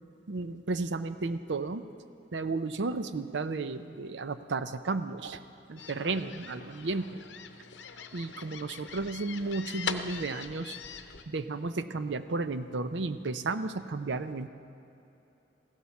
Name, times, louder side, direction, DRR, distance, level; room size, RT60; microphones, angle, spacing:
voice 1, 0.3-1.8 2.3-5.4 5.7-7.2 8.1-10.8 11.3-14.5, right 3 dB, 75° right, 11 dB, 0.6 m, -33 dB
sound 1, 5.8-11.2, left 6 dB, 80° left, 0.7 m, -41 dB
15.5 x 12.5 x 5.9 m, 2.9 s
head